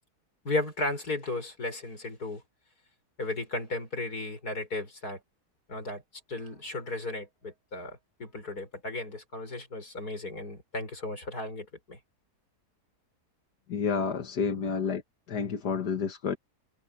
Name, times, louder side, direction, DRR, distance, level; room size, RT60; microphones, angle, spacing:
voice 1, 0.4-2.4 3.2-5.2 5.7-6.0 6.3-12.0, left 2 dB, 70° left, 6.5 m, -35 dB
voice 2, 13.7-15.0 15.3-16.4, left 6 dB, 85° left, 2.2 m, -29 dB
omnidirectional pair, 1.7 m